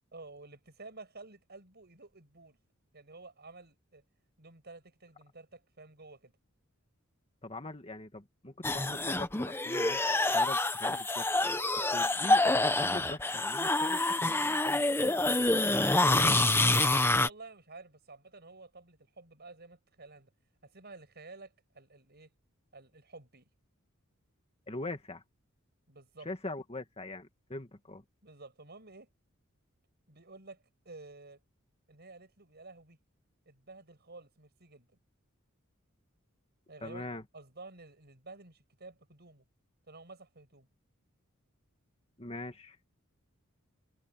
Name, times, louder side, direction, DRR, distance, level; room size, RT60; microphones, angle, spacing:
voice 1, 0.1-2.6 2.9-4.0 4.4-6.3 12.0-12.2 17.1-20.3 20.6-22.3 22.7-23.5 25.9-26.3 28.2-29.1 30.1-31.4 31.9-33.0 33.5-34.9 36.7-39.4 39.9-40.7, right 3 dB, 50° right, 7.1 m, -51 dB
voice 2, 7.4-10.0 10.3-12.4 12.8-15.5 15.8-16.5 24.7-25.2 26.3-28.0 36.8-37.2 42.2-42.8, left 2 dB, 30° left, 2.2 m, -42 dB
sound 1, 8.6-17.3, left 2 dB, 10° left, 1.1 m, -27 dB
head